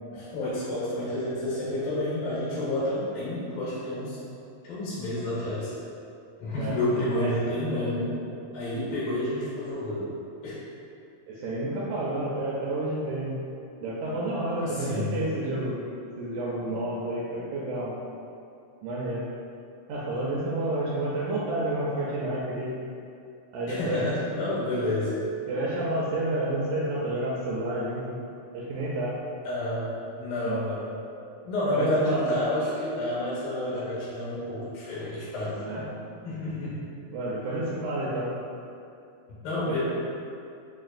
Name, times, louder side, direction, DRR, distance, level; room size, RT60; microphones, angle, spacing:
voice 1, 0.1-4.2 4.6-5.7 6.4-8.2 8.5-10.1 10.4-10.6 14.6-15.2 23.7-25.2 29.4-30.9 31.4-35.9 36.2-36.8 39.4-39.8, left 1 dB, 85° left, -9 dB, 3.0 m, -29 dB
voice 2, 11.3-13.4 13.8-15.8 16.2-17.9 18.8-19.2 19.9-22.7 23.5-24.0 25.5-28.2 28.5-29.1 30.4-30.6 31.7-32.2 33.7-33.8 35.6-35.8 37.1-38.3 39.7-39.8, right 1 dB, 80° right, -7 dB, 1.7 m, -30 dB
5.9 x 2.4 x 2.5 m, 2.6 s
omnidirectional pair, 3.9 m